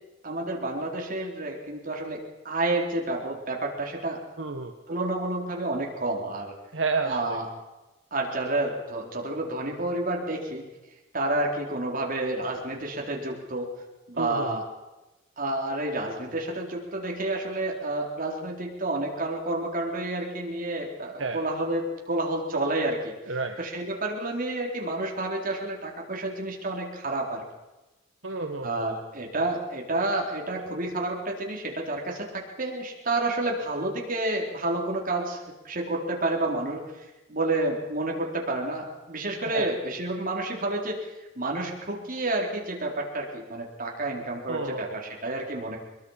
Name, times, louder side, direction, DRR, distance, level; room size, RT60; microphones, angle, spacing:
voice 1, 0.2-4.2 4.9-6.5 7.0-7.5 8.1-10.7 11.1-13.7 14.1-14.6 15.4-23.1 23.6-27.4 28.6-41.0 41.4-45.8, right 2 dB, 45° right, 0 dB, 4.2 m, -30 dB
voice 2, 4.4-4.7 6.7-7.4 14.1-14.6 21.2-21.4 23.3-23.6 28.2-28.9 39.4-39.7 44.5-45.0, right 3 dB, 75° right, 4 dB, 1.3 m, -31 dB
22.5 x 22.0 x 5.9 m, 1.1 s
head